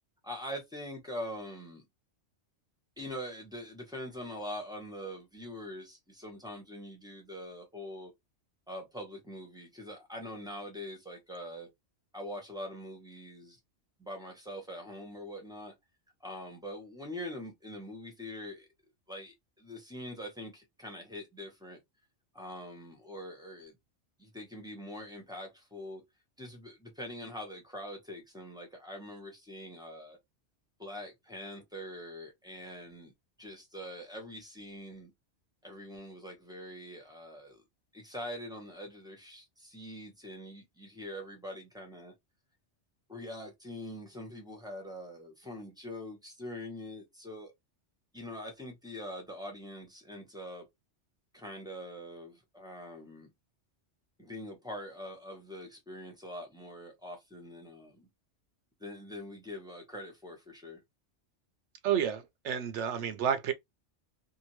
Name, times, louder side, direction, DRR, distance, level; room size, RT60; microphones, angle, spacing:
voice 1, 0.2-1.9 3.0-8.1 8.7-11.7 12.1-13.6 14.0-15.7 16.2-18.6 19.1-21.8 22.3-23.7 24.2-26.0 26.4-30.2 30.8-33.1 33.4-35.1 35.6-37.6 37.9-42.1 43.1-47.5 48.1-50.7 51.3-53.3 54.2-58.1 58.8-60.8, left 1 dB, 5° right, 0.9 m, -43 dB
voice 2, 61.8-63.5, right 8 dB, 80° right, 0.9 m, -30 dB
2.7 x 2.6 x 3.0 m
omnidirectional pair, 1.2 m